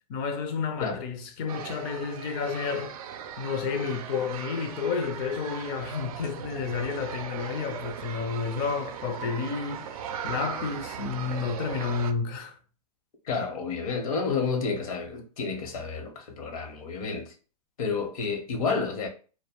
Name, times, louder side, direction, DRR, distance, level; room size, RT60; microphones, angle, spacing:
voice 1, 0.1-2.9 3.4-9.9 10.2-12.6, left 5 dB, 40° left, 0.5 m, -31 dB
sound 1, 1.5-12.1, right 8 dB, 65° right, 0.4 m, -38 dB
voice 2, 13.3-17.3 17.8-19.1, left 5 dB, 60° left, 0.9 m, -30 dB
2.3 x 2.1 x 3.4 m
hypercardioid pair, 115°, 20 cm